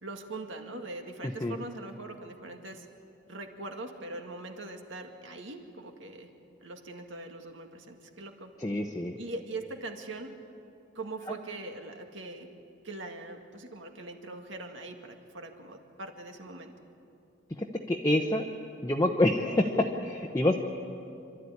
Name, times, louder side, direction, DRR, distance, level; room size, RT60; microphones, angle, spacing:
voice 1, 0.0-2.9 3.3-6.3 6.6-8.5 9.2-10.4 10.9-12.5 12.8-16.7, right 2 dB, 70° right, 4 dB, 2.1 m, -42 dB
voice 2, 8.6-9.1 17.6-18.5 18.8-20.5, left 1 dB, 15° left, 0 dB, 0.9 m, -27 dB
27.5 x 12.5 x 9.7 m, 2.6 s
head